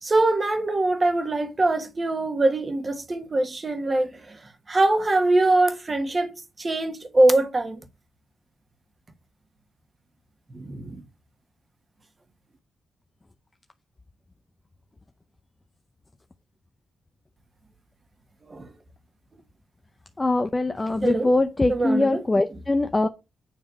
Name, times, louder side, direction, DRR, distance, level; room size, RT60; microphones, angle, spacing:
voice 1, 0.0-4.4 4.7-6.3 6.6-7.8 10.5-11.0 18.5-18.7 21.0-21.3 21.7-22.6, right 2 dB, 30° right, 1.4 m, -23 dB
voice 2, 20.2-23.1, left 2 dB, 25° left, 0.6 m, -22 dB
9.4 x 3.3 x 5.0 m
cardioid pair, 85°, 0 cm